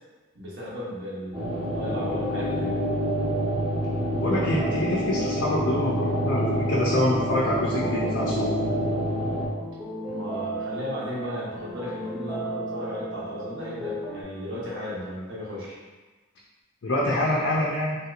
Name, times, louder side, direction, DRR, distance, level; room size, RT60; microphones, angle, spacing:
voice 1, 0.3-2.8 10.0-15.8, left 1 dB, 65° right, -7 dB, 0.9 m, -35 dB
sound 1, 1.3-9.4, equal, 25° right, 0.8 m, -27 dB
voice 2, 4.1-8.5 16.8-18.0, left 1 dB, 65° left, -5 dB, 0.5 m, -26 dB
sound 2, 4.6-14.2, right 2 dB, 5° left, 0.6 m, -35 dB
3.3 x 2.8 x 2.4 m, 1.3 s
head